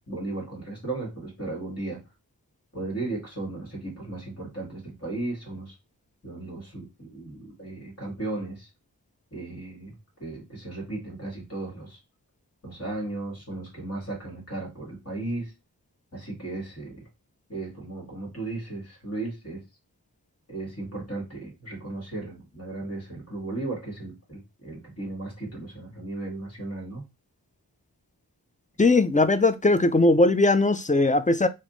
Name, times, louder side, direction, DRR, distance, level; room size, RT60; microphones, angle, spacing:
voice 1, 0.0-2.0 2.7-5.7 6.2-8.7 9.3-9.9 10.2-12.0 12.6-15.5 16.1-17.0 17.5-19.6 20.5-27.0, right 2 dB, 40° left, 1.7 m, -35 dB
voice 2, 28.8-31.5, left 2 dB, 20° left, 0.4 m, -19 dB
3.4 x 2.6 x 3.8 m
wide cardioid pair, 45°, 38 cm